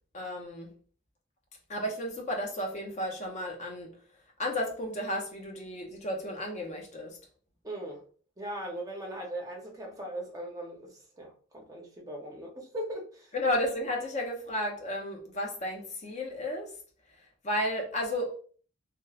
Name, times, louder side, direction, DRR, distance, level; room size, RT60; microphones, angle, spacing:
voice 1, 0.1-0.7 1.7-3.9 4.4-7.2 13.3-16.7 17.4-18.4, left 1 dB, 35° left, 0.6 m, -33 dB
voice 2, 7.6-8.0 8.4-13.3, right 1 dB, 15° right, 0.6 m, -39 dB
2.9 x 2.0 x 2.3 m
head